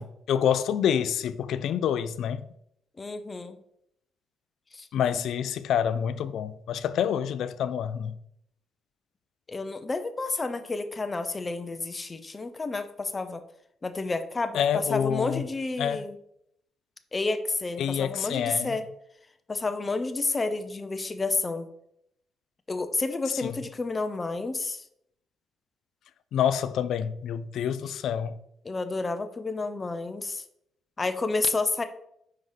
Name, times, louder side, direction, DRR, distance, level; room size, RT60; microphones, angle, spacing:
voice 1, 0.0-2.5 4.9-8.2 14.5-15.4 15.8-16.1 17.8-18.8 23.4-23.6 26.3-28.4, left 8 dB, 75° left, 0.4 m, -27 dB
voice 2, 3.0-3.6 4.7-4.9 9.5-13.4 13.8-16.2 17.1-18.9 19.5-21.7 22.7-24.9 28.6-30.4 31.0-31.8, left 3 dB, 25° left, 0.6 m, -30 dB
5.4 x 4.7 x 3.9 m
cardioid pair, 90°, 0 cm